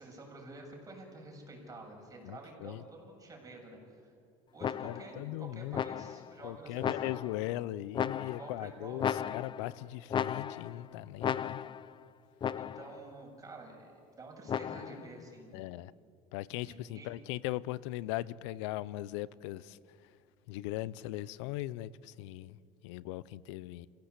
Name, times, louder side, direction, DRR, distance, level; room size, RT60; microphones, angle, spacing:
voice 1, 0.0-4.1 4.5-7.2 8.2-9.1 12.6-15.7 16.7-17.1, right 2 dB, 25° right, 7.4 m, -49 dB
voice 2, 2.2-2.8 4.8-5.8 6.4-11.6 15.5-15.9 16.3-20.1 20.5-22.6 22.8-23.9, left 16 dB, 85° left, 0.7 m, -39 dB
sound 1, 4.6-5.2 5.7-6.3 6.8-7.5 7.9-8.6 9.0-9.7 10.1-10.8 11.2-11.9 12.4-13.0 14.5-15.1, left 8 dB, 35° left, 0.7 m, -35 dB
29.0 x 16.5 x 8.3 m
supercardioid pair, 110°, 15 cm